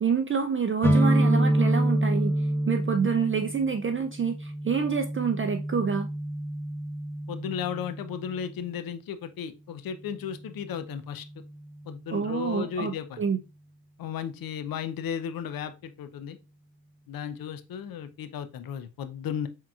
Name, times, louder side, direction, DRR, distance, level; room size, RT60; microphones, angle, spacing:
voice 1, 0.0-2.3 2.7-6.1 12.1-13.4, right 6 dB, 30° right, 0.5 m, -27 dB
sound 1, 0.8-8.4, right 1 dB, 5° left, 0.8 m, -27 dB
voice 2, 7.3-11.3 11.8-13.2 14.0-16.4 17.1-19.5, left 8 dB, 50° left, 0.6 m, -35 dB
4.5 x 3.6 x 2.4 m
supercardioid pair, 55°, 46 cm